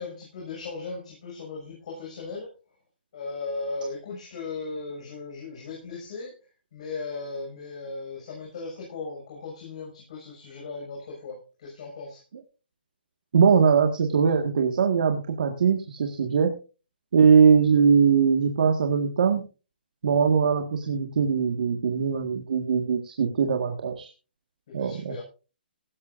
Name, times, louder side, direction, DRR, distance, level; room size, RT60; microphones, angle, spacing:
voice 1, 0.0-2.5 3.1-12.2 24.7-25.2, left 3 dB, 40° left, -2 dB, 6.5 m, -37 dB
voice 2, 13.3-16.5 17.1-19.4 20.0-24.1 24.7-25.2, right 6 dB, 55° right, 3 dB, 1.9 m, -21 dB
16.5 x 14.0 x 2.6 m, 0.34 s
hypercardioid pair, 175°, 6 cm